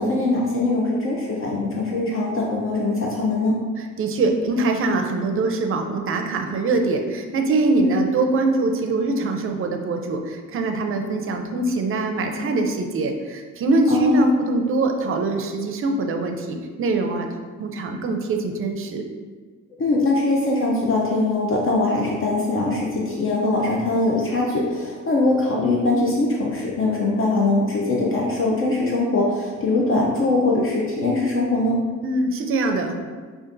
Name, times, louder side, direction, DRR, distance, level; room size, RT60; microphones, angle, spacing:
voice 1, 0.0-3.5 7.8-8.0 13.9-14.3 19.8-31.8, left 2 dB, 45° left, -2 dB, 0.6 m, -22 dB
voice 2, 3.8-17.3 17.6-19.0 32.0-32.9, right 3 dB, 45° right, 4 dB, 0.5 m, -23 dB
4.9 x 2.4 x 2.6 m, 1.5 s
cardioid pair, 90°, 30 cm